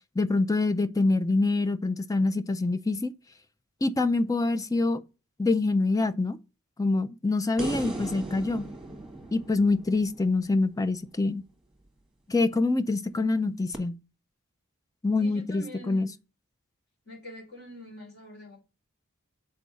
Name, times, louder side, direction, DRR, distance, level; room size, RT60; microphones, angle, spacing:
voice 1, 0.2-3.1 3.8-5.0 5.4-6.4 6.8-8.7 9.3-11.4 12.3-14.0 15.0-16.1, left 3 dB, 15° left, 0.4 m, -25 dB
sound 1, 7.6-10.9 13.7-13.8, right 1 dB, ahead, 1.5 m, -37 dB
voice 2, 15.2-16.1 17.0-18.6, left 1 dB, 50° left, 3.4 m, -44 dB
6.5 x 4.6 x 6.2 m
head